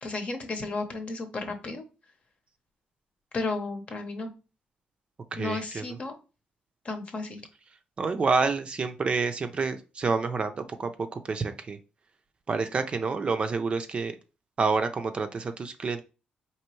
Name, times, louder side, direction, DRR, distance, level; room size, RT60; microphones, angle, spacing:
voice 1, 0.0-1.8 3.3-4.3 5.4-6.1 6.8-7.4, left 3 dB, 45° left, 6 dB, 0.9 m, -33 dB
voice 2, 5.3-5.9 8.0-11.8 12.5-14.2 14.6-16.0, right 4 dB, 40° right, 8 dB, 0.5 m, -28 dB
4.3 x 3.0 x 3.1 m, 0.31 s
cardioid pair, 105°, 3 cm